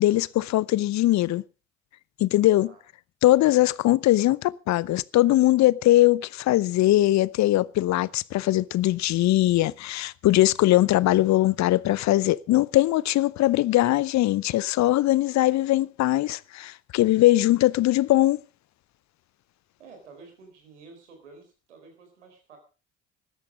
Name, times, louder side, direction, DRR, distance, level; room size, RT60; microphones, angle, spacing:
voice 1, 0.0-1.4 2.2-2.7 3.2-18.4, left 16 dB, 55° left, 0.7 m, -21 dB
voice 2, 19.8-22.6, right 4 dB, 90° right, 4.2 m, -50 dB
14.5 x 12.0 x 5.1 m
hypercardioid pair, 55°, 34 cm